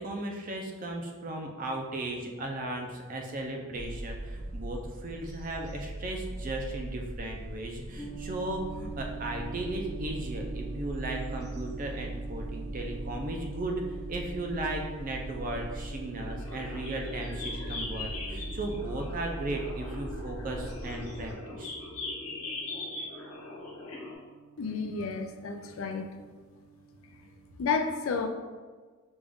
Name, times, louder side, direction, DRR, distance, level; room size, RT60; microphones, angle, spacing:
voice 1, 0.0-13.8 14.1-21.7, right 2 dB, 40° right, 2 dB, 0.5 m, -36 dB
sound 1, 3.7-21.3, right 1 dB, 85° right, 0.9 m, -40 dB
sound 2, 8.0-27.5, right 6 dB, 5° left, 0.7 m, -47 dB
sound 3, 16.2-24.1, left 3 dB, 85° left, 1.1 m, -40 dB
voice 2, 24.6-26.1 27.6-28.3, left 5 dB, 65° left, 6 dB, 0.4 m, -31 dB
5.1 x 2.4 x 3.5 m, 1.4 s
head